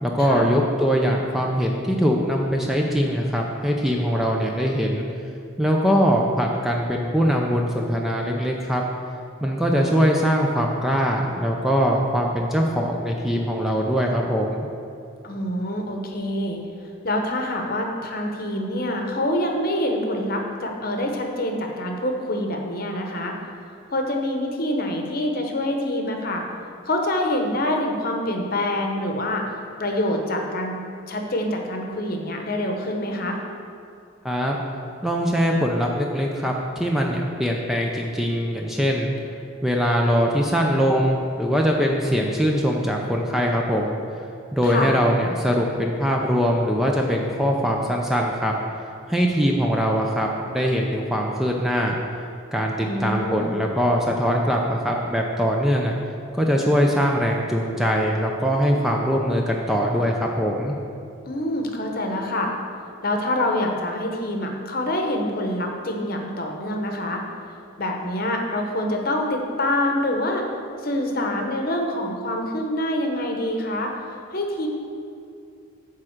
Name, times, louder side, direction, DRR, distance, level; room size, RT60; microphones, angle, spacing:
voice 1, 0.0-5.1 5.6-8.8 9.4-14.6 34.2-34.6 35.0-39.1 39.6-44.0 44.5-48.5 49.1-51.9 52.5-56.0 56.4-60.8, equal, ahead, -1 dB, 0.4 m, -22 dB
voice 2, 15.2-16.6 17.0-23.3 23.7-26.4 26.9-29.4 29.8-30.7 31.1-33.4 44.6-44.9 52.8-53.6 61.3-62.5 63.0-67.2 67.8-70.5 70.8-74.7, left 1 dB, 45° left, 2 dB, 0.9 m, -26 dB
8.9 x 3.7 x 6.4 m, 2.5 s
head